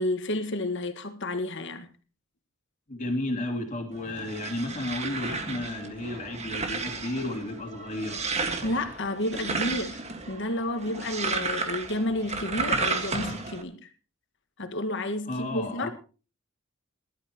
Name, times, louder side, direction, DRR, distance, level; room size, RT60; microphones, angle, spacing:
voice 1, 0.0-1.9 8.6-10.0 10.3-13.9 14.6-15.9, left 1 dB, 60° left, 1.8 m, -31 dB
voice 2, 2.9-8.2 15.3-15.9, left 1 dB, 35° left, 3.1 m, -32 dB
sound 1, 3.9-13.6, right 4 dB, 30° right, 1.8 m, -33 dB
21.0 x 12.0 x 3.0 m
head